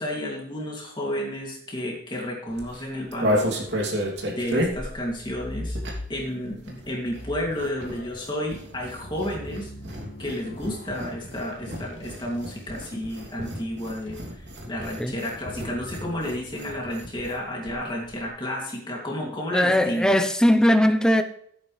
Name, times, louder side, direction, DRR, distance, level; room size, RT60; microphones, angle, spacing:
voice 1, 0.0-3.6 4.3-5.8 6.1-9.7 10.2-20.2, left 1 dB, 25° left, 2.5 m, -31 dB
sound 1, 2.5-6.2 6.5-17.4 17.7-17.8 18.0-18.3, equal, 65° right, 2.8 m, -32 dB
sound 2, 5.1-6.6 7.0-12.5 14.1-14.4, left 1 dB, 75° left, 2.1 m, -40 dB
voice 2, 19.2-21.2, equal, 5° left, 0.7 m, -20 dB
15.5 x 9.5 x 3.3 m
head